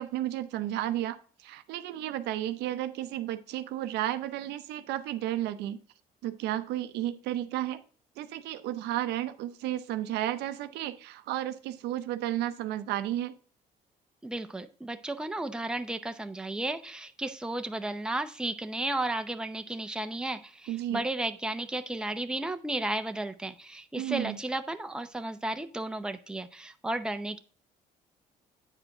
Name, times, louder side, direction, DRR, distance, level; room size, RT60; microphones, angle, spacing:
voice 1, 0.0-5.8 6.2-7.8 8.2-13.3 20.7-21.0 23.9-24.4, right 13 dB, 85° right, 11 dB, 0.7 m, -33 dB
voice 2, 14.2-27.4, right 2 dB, 5° right, 7 dB, 0.6 m, -33 dB
8.9 x 4.9 x 3.8 m, 0.42 s
cardioid pair, 110°, 17 cm